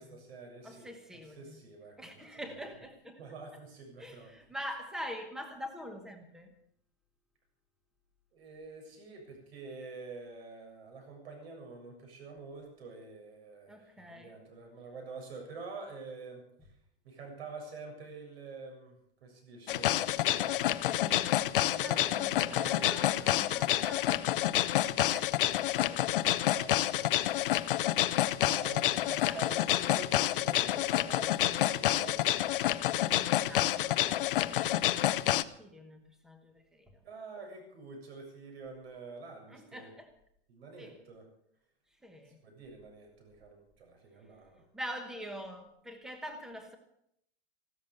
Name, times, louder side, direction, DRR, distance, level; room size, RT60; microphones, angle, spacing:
voice 1, 0.0-0.9 1.4-2.0 3.2-4.3 8.3-16.7 17.0-20.6 21.5-23.9 25.4-27.7 28.4-32.3 34.1-34.6 37.0-39.9 40.5-41.3 42.3-44.7, right 4 dB, 70° right, 2 dB, 7.2 m, -47 dB
voice 2, 0.6-1.6 2.0-3.2 4.0-6.5 13.7-14.4 16.6-16.7 20.6-21.5 21.8-26.1 29.3-29.4 32.9-37.0 39.5-40.1 40.8-41.0 42.0-42.4 44.7-46.8, equal, ahead, 6 dB, 1.0 m, -45 dB
sound 1, 19.7-35.4, left 13 dB, 55° left, 0.7 m, -28 dB
15.0 x 13.0 x 6.7 m, 0.72 s
supercardioid pair, 180°, 32 cm